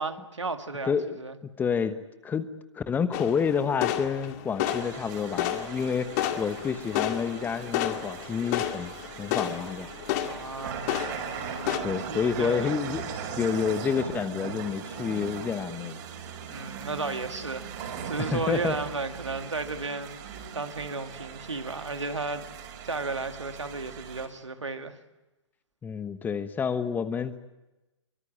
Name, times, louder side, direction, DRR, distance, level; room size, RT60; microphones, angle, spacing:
voice 1, 0.0-1.4 10.2-10.8 12.1-12.7 16.5-25.0, right 3 dB, 80° right, 7 dB, 2.3 m, -34 dB
voice 2, 1.4-2.0 2.2-6.1 6.4-8.9 9.2-9.9 11.8-13.1 13.4-16.0 18.2-18.8 25.8-27.3, left 6 dB, 10° left, 12 dB, 1.2 m, -29 dB
sound 1, 3.1-11.8, left 12 dB, 35° left, 2.1 m, -32 dB
sound 2, 4.6-24.3, right 7 dB, 40° right, 5.9 m, -39 dB
24.0 x 24.0 x 8.7 m, 1.0 s
figure-of-eight pair, 120°, 15 cm